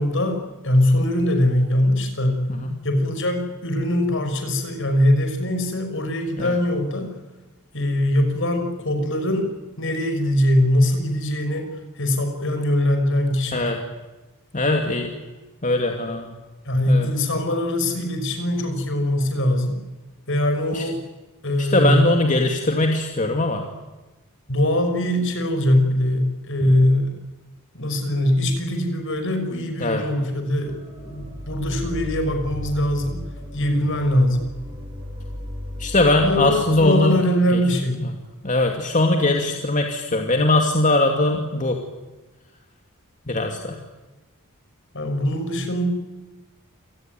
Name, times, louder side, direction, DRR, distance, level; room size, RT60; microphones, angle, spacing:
voice 1, 0.0-2.4 2.8-7.1 7.7-9.5 9.8-11.7 12.0-13.7 16.6-19.8 20.3-21.0 21.4-22.0 24.5-27.1 27.7-33.2 33.5-34.5 36.2-38.0 44.9-45.8, left 1 dB, 60° left, 6 dB, 6.1 m, -22 dB
voice 2, 14.5-15.1 15.6-16.3 16.9-17.1 20.7-20.8 21.6-23.6 29.8-30.0 35.8-37.2 37.5-37.6 38.4-41.8 43.3-43.8, left 2 dB, 35° left, 3 dB, 2.6 m, -20 dB
sound 1, 30.6-36.9, left 1 dB, 20° right, 6.4 m, -35 dB
28.0 x 19.5 x 9.3 m, 1.2 s
head